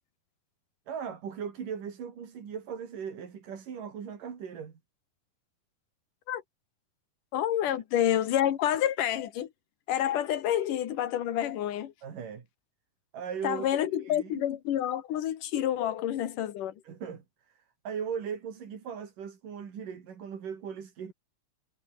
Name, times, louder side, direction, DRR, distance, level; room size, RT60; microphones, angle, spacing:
voice 1, 0.9-4.7 7.6-7.8 12.0-12.5 13.1-14.5 16.8-21.1, right 7 dB, 60° right, 4.7 m, -39 dB
voice 2, 7.3-9.5 9.9-11.9 13.4-16.7, left 11 dB, 65° left, 3.0 m, -28 dB
omnidirectional pair, 4.3 m